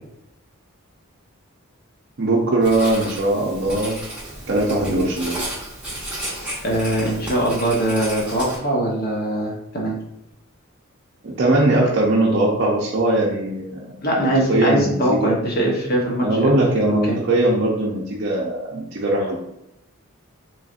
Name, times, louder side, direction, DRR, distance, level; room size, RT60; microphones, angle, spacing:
voice 1, 2.2-4.0 4.5-5.4 11.2-13.8 14.1-15.3 16.2-19.4, right 2 dB, 55° right, -4 dB, 0.5 m, -20 dB
Writing, 2.6-8.6, right 1 dB, 5° right, 1.0 m, -32 dB
voice 2, 6.6-10.0 14.0-16.3 16.9-17.2, right 1 dB, 45° left, -2 dB, 0.8 m, -21 dB
4.0 x 3.1 x 2.4 m, 0.83 s
head